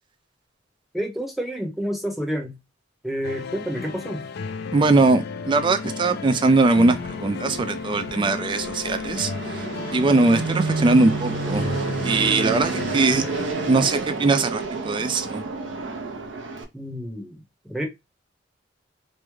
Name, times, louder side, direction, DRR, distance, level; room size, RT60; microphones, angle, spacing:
voice 1, 0.9-2.6 3.0-4.3 16.7-17.8, equal, ahead, 0.8 m, -29 dB
sound 1, 3.2-13.4, left 5 dB, 60° left, 0.4 m, -34 dB
voice 2, 4.7-9.3 9.9-11.7 12.0-13.2 13.7-15.4, right 3 dB, 25° right, 0.3 m, -20 dB
Fixed-wing aircraft airplane, 6.4-16.6, right 3 dB, 85° right, 0.6 m, -30 dB
3.1 x 2.1 x 3.4 m
head